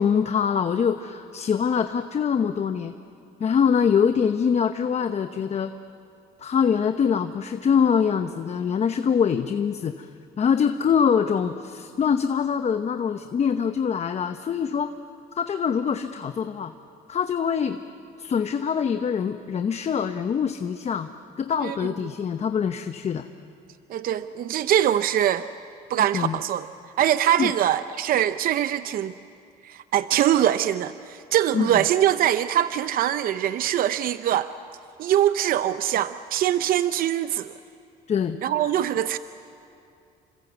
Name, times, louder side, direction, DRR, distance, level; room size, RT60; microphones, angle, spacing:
voice 1, 0.0-2.9 3.4-5.7 6.4-10.1 10.4-14.9 15.4-16.7 17.1-17.8 18.2-21.1 21.4-23.3 26.1-26.3 27.4-27.5 31.5-31.8 38.1-38.4, left 7 dB, 40° left, 8 dB, 0.9 m, -24 dB
voice 2, 23.9-25.5 25.9-26.7 27.0-29.1 29.6-34.5 35.0-37.5 38.4-39.2, right 11 dB, 60° right, 12 dB, 0.7 m, -23 dB
28.5 x 25.5 x 8.2 m, 2.6 s
cardioid pair, 110°, 17 cm